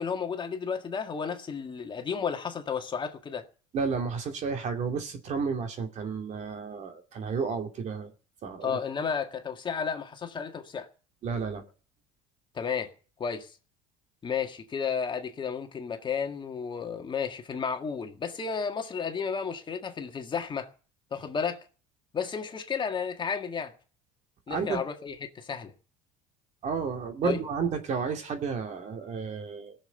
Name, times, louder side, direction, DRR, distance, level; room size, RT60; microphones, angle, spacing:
voice 1, 0.0-3.4 8.6-10.9 12.5-12.9 13.2-13.5 14.2-20.7 21.1-21.6 22.1-23.7 24.5-25.7 27.2-27.4, left 6 dB, 30° left, 1.8 m, -32 dB
voice 2, 3.7-8.1 8.4-8.8 11.2-11.6 24.5-24.8 26.6-29.8, right 5 dB, 45° right, 2.5 m, -32 dB
17.0 x 7.2 x 8.9 m
supercardioid pair, 110°, 16 cm